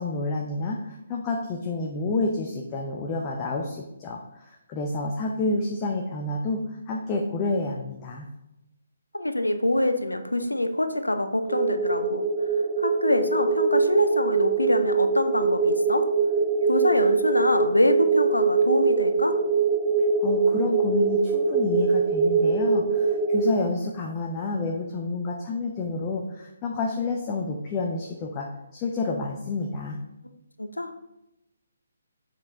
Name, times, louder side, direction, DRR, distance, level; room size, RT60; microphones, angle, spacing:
voice 1, 0.0-8.3 20.2-30.0, left 3 dB, 20° left, 0 dB, 0.6 m, -29 dB
voice 2, 9.1-12.2 12.8-16.1 16.7-19.4 30.6-30.9, left 1 dB, 80° left, 8 dB, 0.7 m, -25 dB
sound 1, 11.5-23.5, right 4 dB, 20° right, 0.6 m, -23 dB
7.4 x 4.5 x 3.5 m, 0.92 s
figure-of-eight pair, 140°, 0 cm